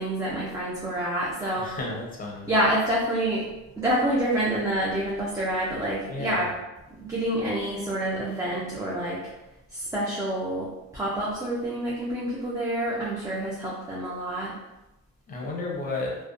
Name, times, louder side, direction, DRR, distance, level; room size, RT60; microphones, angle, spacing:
voice 1, 0.0-1.7 2.5-3.4 3.8-6.5 7.0-9.2 9.7-10.7 10.9-14.5, right 1 dB, 10° right, -6 dB, 0.5 m, -27 dB
voice 2, 1.6-2.5 6.1-6.4 15.3-16.2, left 2 dB, 30° left, -2 dB, 0.7 m, -32 dB
2.4 x 2.2 x 2.4 m, 0.99 s
cardioid pair, 105°, 30 cm